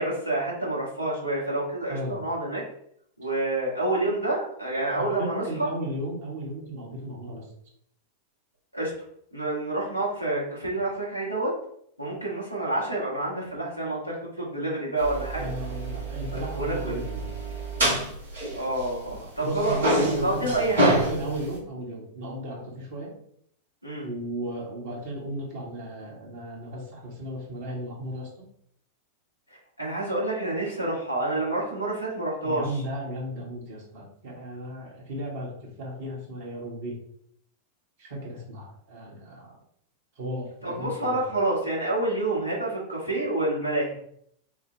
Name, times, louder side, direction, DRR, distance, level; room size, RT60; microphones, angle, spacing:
voice 1, 0.0-2.6 3.2-5.4 8.7-8.9 9.3-11.5 12.0-15.5 16.3-17.0 18.5-21.1 23.8-24.1 29.8-32.7 40.6-43.9, right 2 dB, 90° left, -5 dB, 1.8 m, -28 dB
voice 2, 4.9-7.4 15.3-17.2 19.4-23.1 24.0-28.3 32.4-36.9 38.0-39.5 40.2-41.2, right 1 dB, 55° right, -3 dB, 1.7 m, -35 dB
sound 1, 15.0-19.2 19.5-21.6, right 1 dB, 70° right, 1.5 m, -28 dB
5.8 x 2.4 x 3.2 m, 0.68 s
figure-of-eight pair, 90°, 0 cm